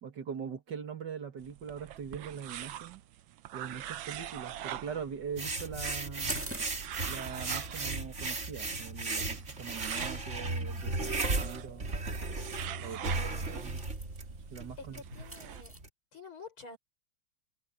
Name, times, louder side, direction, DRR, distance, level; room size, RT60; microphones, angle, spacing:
voice 1, 0.0-3.0 3.5-6.5 7.0-11.1 11.4-12.0 12.8-13.8 14.5-15.0, right 7 dB, 60° right, 2.2 m, -42 dB
sound 1, 1.4-15.6, right 11 dB, 75° right, 1.6 m, -45 dB
sound 2, 5.4-15.9, right 3 dB, 35° right, 2.6 m, -36 dB
sound 3, 6.3-15.8, right 1 dB, 10° right, 1.2 m, -49 dB
voice 2, 12.8-13.4 14.8-15.8 16.1-16.8, left 4 dB, 85° left, 6.7 m, -49 dB
omnidirectional pair, 2.2 m